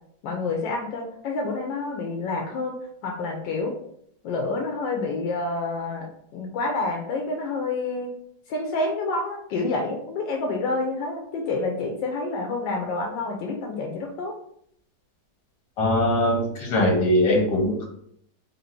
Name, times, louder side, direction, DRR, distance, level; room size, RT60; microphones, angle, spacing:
voice 1, 0.2-2.8 3.0-3.7 4.2-6.1 6.3-8.1 8.5-14.3, left 3 dB, 85° left, 1 dB, 1.4 m, -28 dB
voice 2, 15.8-17.8, left 1 dB, 65° left, 0 dB, 1.7 m, -21 dB
3.7 x 2.7 x 4.3 m, 0.70 s
omnidirectional pair, 1.9 m